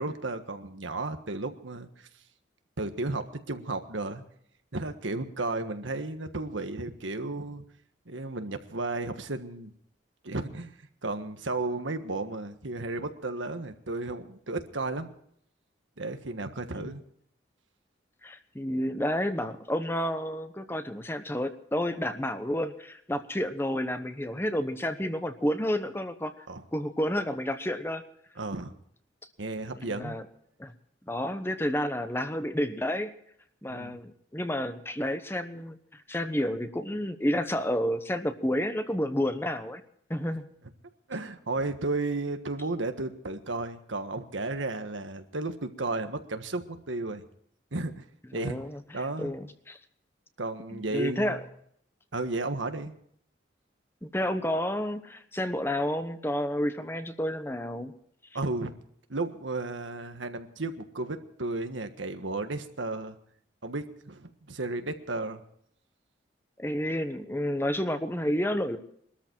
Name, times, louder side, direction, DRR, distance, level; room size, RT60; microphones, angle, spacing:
voice 1, 0.0-1.9 2.8-4.2 4.7-7.6 8.1-9.7 10.2-10.7 11.0-15.1 16.0-17.0 26.5-26.6 28.4-28.7 29.4-30.2 33.7-34.0 41.1-47.2 47.7-48.0 48.3-48.6 48.9-49.3 50.4-51.4 52.1-52.9 58.3-58.7 59.1-63.2 63.6-65.4, right 2 dB, 90° right, 8 dB, 1.5 m, -33 dB
voice 2, 18.2-26.5 26.7-28.0 29.8-30.2 30.6-30.7 31.1-33.1 33.6-39.8 40.1-40.4 48.3-48.8 49.2-49.8 50.7-51.4 54.0-57.9 66.6-68.8, equal, 10° left, 9 dB, 1.0 m, -30 dB
22.0 x 13.5 x 4.6 m, 0.66 s
head